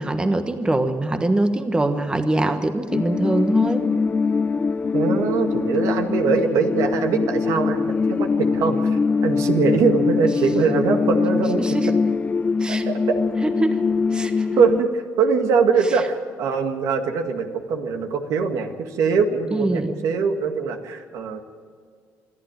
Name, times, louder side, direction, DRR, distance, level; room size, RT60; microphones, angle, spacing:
voice 1, 0.0-3.9 11.6-11.9 12.6-13.0 13.4-13.8 14.1-14.5 19.5-19.9, right 2 dB, 15° right, 8 dB, 1.3 m, -23 dB
sound 1, 2.9-14.8, left 4 dB, 25° left, 0.5 m, -22 dB
voice 2, 4.9-11.6 12.7-13.2 14.6-21.4, right 5 dB, 70° right, 5 dB, 1.9 m, -22 dB
25.5 x 11.5 x 9.0 m, 2.1 s
cardioid pair, 100°, 6 cm